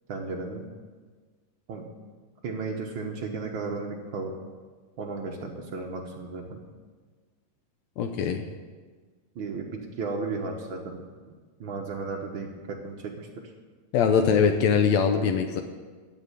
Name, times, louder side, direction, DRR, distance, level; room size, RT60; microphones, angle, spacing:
voice 1, 0.1-0.7 1.7-1.9 2.4-4.4 5.0-6.6 9.3-11.1 11.6-13.3, right 4 dB, 85° right, 0 dB, 1.0 m, -34 dB
voice 2, 8.0-8.4 13.9-15.6, left 6 dB, 75° left, 6 dB, 1.7 m, -22 dB
15.0 x 5.5 x 9.9 m, 1.4 s
omnidirectional pair, 3.9 m